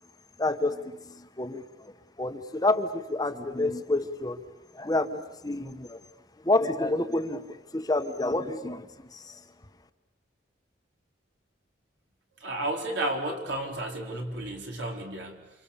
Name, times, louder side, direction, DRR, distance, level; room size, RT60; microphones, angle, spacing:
voice 1, 0.4-1.9 2.2-4.4 4.7-6.0 6.4-9.4, left 2 dB, 20° left, 8 dB, 1.1 m, -29 dB
voice 2, 12.4-15.5, right 1 dB, 75° right, 1 dB, 4.4 m, -32 dB
28.5 x 27.0 x 7.1 m, 1.0 s
head